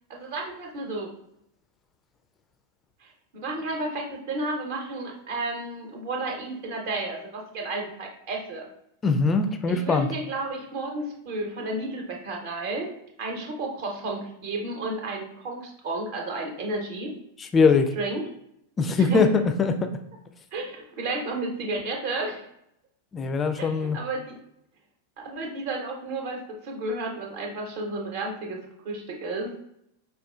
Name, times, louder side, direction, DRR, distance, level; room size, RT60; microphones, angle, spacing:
voice 1, 0.1-1.1 3.0-8.7 9.7-12.9 13.2-17.1 18.0-18.2 19.0-19.2 20.5-22.4 23.6-24.4 25.2-29.5, right 2 dB, 50° right, 1 dB, 0.9 m, -32 dB
voice 2, 9.0-10.1 17.4-17.9 18.8-20.0 23.1-24.0, left 4 dB, 20° left, 7 dB, 0.4 m, -22 dB
4.8 x 2.4 x 2.3 m, 0.77 s
figure-of-eight pair, 90°, 0 cm